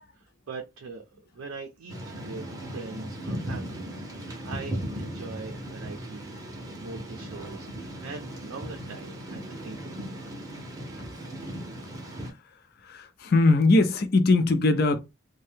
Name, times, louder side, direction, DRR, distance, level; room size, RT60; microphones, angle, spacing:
voice 1, 0.1-6.4 6.8-10.0, right 4 dB, 80° right, 0.5 m, -42 dB
Thunder / Rain, 1.9-12.3, equal, 15° right, 0.6 m, -37 dB
voice 2, 12.8-15.0, left 2 dB, 50° left, 0.4 m, -21 dB
2.7 x 2.2 x 3.3 m
head